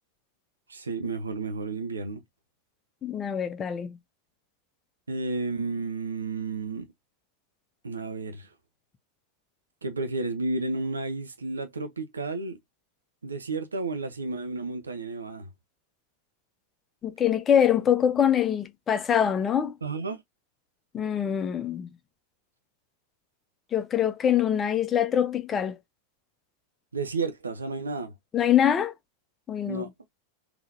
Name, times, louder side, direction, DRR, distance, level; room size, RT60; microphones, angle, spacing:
voice 1, 0.7-2.2 5.1-6.9 7.8-8.5 9.8-12.6 13.2-15.5 19.8-20.2 26.9-28.1 29.6-29.9, right 3 dB, 75° right, 0.8 m, -32 dB
voice 2, 3.0-4.0 17.0-19.7 20.9-21.9 23.7-25.8 28.3-28.9 29.5-29.8, left 9 dB, 25° left, 0.6 m, -24 dB
3.7 x 3.0 x 2.6 m
figure-of-eight pair, 90°, 0 cm